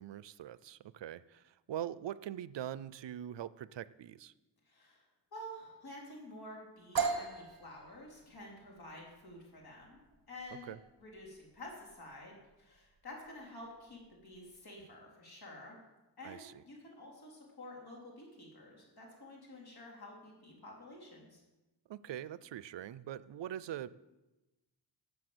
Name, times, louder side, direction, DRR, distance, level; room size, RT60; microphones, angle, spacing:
voice 1, 0.0-4.3 10.7-10.8 16.2-16.6 21.9-23.9, right 11 dB, 80° right, 18 dB, 0.6 m, -43 dB
voice 2, 4.7-5.0 5.3-10.0 10.3-10.7 11.0-15.8 16.2-21.4, left 1 dB, 60° left, -2 dB, 3.9 m, -50 dB
sound 1, 7.0-14.6, right 5 dB, 55° right, 1.4 m, -41 dB
12.5 x 7.2 x 7.9 m, 1.1 s
wide cardioid pair, 150°, 43 cm